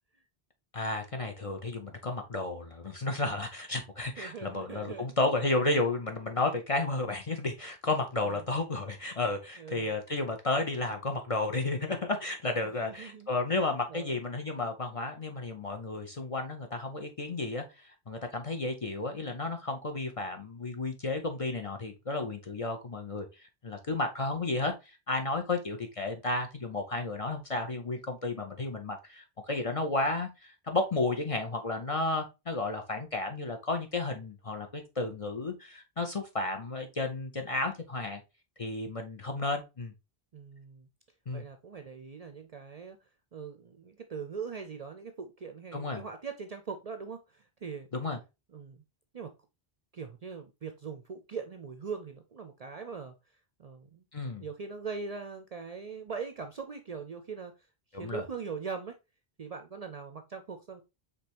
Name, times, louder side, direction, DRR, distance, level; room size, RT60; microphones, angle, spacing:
voice 1, 0.7-38.2 38.6-39.9 41.3-41.4 45.7-46.0 47.9-48.2 54.1-54.4 57.9-58.2, left 2 dB, 40° left, 0.6 m, -32 dB
voice 2, 4.2-5.1 8.2-8.4 9.6-9.9 12.6-14.1 40.3-40.9 41.3-43.0 43.3-47.9 48.5-48.8 49.1-49.3 49.9-53.1 53.6-54.0 54.4-57.5 58.0-59.0 59.4-60.8, right 5 dB, 50° right, 0.5 m, -41 dB
5.1 x 3.3 x 2.9 m
omnidirectional pair, 1.1 m